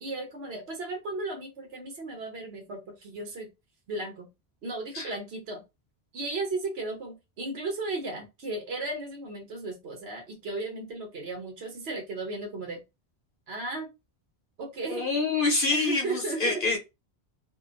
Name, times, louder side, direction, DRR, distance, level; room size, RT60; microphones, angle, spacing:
voice 1, 0.0-3.5 3.9-4.3 4.6-5.6 6.1-12.8 13.5-13.9 14.6-15.1 15.7-16.6, right 2 dB, 75° right, 1.1 m, -35 dB
voice 2, 14.9-16.8, left 3 dB, 60° left, 0.9 m, -26 dB
2.8 x 2.2 x 2.4 m
omnidirectional pair, 1.1 m